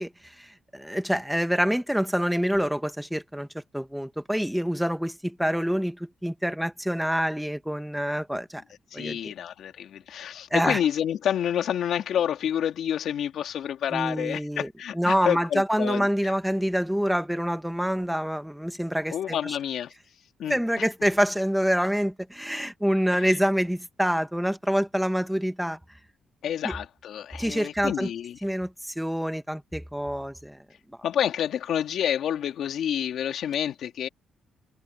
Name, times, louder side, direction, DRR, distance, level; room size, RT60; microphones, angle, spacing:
voice 1, 0.0-8.6 8.9-9.3 10.5-10.8 13.9-19.6 20.5-25.8 26.6-26.7 27.4-28.1 28.4-30.6, equal, ahead, 1.8 m, -26 dB
voice 2, 8.9-16.3 19.1-19.9 20.4-20.6 23.1-23.3 26.4-28.4 31.0-34.1, left 9 dB, 70° left, 2.8 m, -28 dB
cardioid pair, 90°, 0 cm